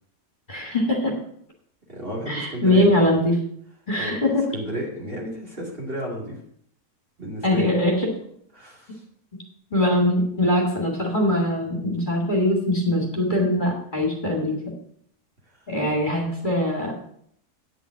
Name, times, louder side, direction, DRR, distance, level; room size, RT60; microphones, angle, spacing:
voice 1, 0.5-1.2 2.3-3.4 3.9-4.5 7.4-8.1 9.7-14.6 15.7-16.9, left 1 dB, 30° left, 0 dB, 2.1 m, -22 dB
voice 2, 1.9-2.9 4.0-4.2 4.5-6.4 7.2-7.7 8.5-9.0, right 1 dB, 35° right, -2 dB, 2.6 m, -32 dB
9.1 x 5.5 x 7.3 m, 0.68 s
omnidirectional pair, 1.7 m